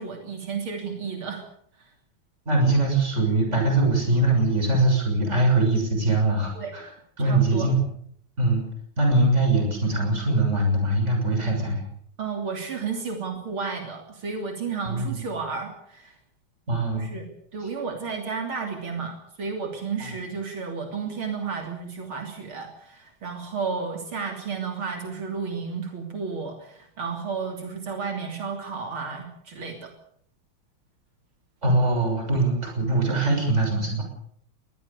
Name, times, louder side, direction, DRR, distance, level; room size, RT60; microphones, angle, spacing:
voice 1, 0.0-1.4 1.8-1.9 6.5-6.7 7.2-7.7 12.2-16.2 16.9-17.3 17.5-29.9, right 5 dB, 80° right, 3 dB, 3.9 m, -32 dB
voice 2, 2.5-6.9 7.2-7.8 8.4-8.6 9.0-11.8 14.9-15.2 16.7-17.1 20.0-20.1 31.6-34.0, right 2 dB, 30° right, 2 dB, 6.9 m, -22 dB
22.5 x 19.0 x 6.9 m, 0.66 s
omnidirectional pair, 2.3 m